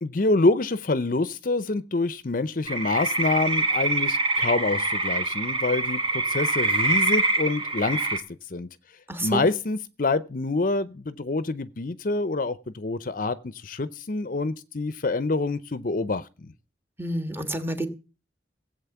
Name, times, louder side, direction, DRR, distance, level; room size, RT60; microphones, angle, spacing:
voice 1, 0.0-8.2 8.5-8.7 9.2-16.5, left 3 dB, 50° left, 0.6 m, -26 dB
sound 1, 2.7-8.2, right 2 dB, 30° right, 2.3 m, -25 dB
voice 2, 9.1-9.5 17.0-17.9, right 1 dB, 15° right, 1.5 m, -28 dB
17.0 x 8.0 x 7.0 m
head